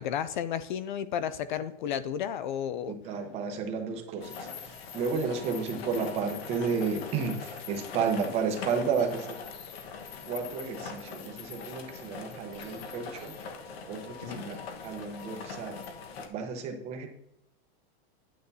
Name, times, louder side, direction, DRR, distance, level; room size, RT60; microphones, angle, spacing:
voice 1, 0.0-3.0 14.2-14.5, left 9 dB, 50° left, 14 dB, 0.4 m, -32 dB
voice 2, 2.9-4.4 4.7-9.4 10.3-13.4 13.9-15.8 16.3-17.1, right 5 dB, 20° right, 4 dB, 0.8 m, -32 dB
sound 1, 4.2-16.3, left 5 dB, 70° left, 1.3 m, -42 dB
9.4 x 9.1 x 2.7 m, 0.80 s
supercardioid pair, 180°, 32 cm